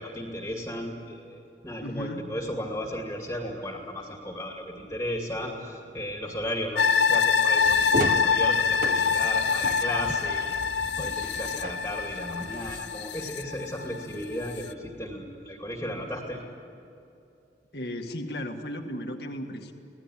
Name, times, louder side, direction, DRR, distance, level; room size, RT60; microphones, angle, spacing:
voice 1, 0.0-10.5 11.0-16.4, equal, 15° left, 1 dB, 2.5 m, -35 dB
voice 2, 1.8-2.2 17.7-19.7, equal, 65° left, 4 dB, 1.9 m, -35 dB
sound 1, 6.8-14.1 14.5-14.6, left 6 dB, 85° left, 0.8 m, -25 dB
sound 2, 7.6-12.8, right 1 dB, 45° right, 1.1 m, -36 dB
26.5 x 18.5 x 9.9 m, 2.7 s
head